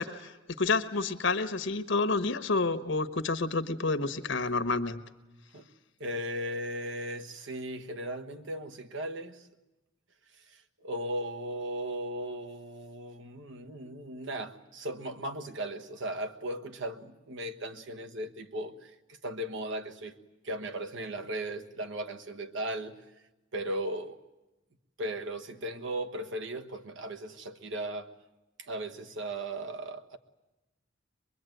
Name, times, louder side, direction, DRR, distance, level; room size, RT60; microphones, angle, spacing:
voice 1, 0.0-5.0, left 3 dB, 65° left, 1.2 m, -29 dB
voice 2, 6.0-9.5 10.5-18.9 19.2-20.1 20.4-23.0 23.5-24.2 25.0-28.1 28.6-30.2, right 1 dB, 65° right, 1.3 m, -37 dB
23.0 x 22.0 x 9.2 m
head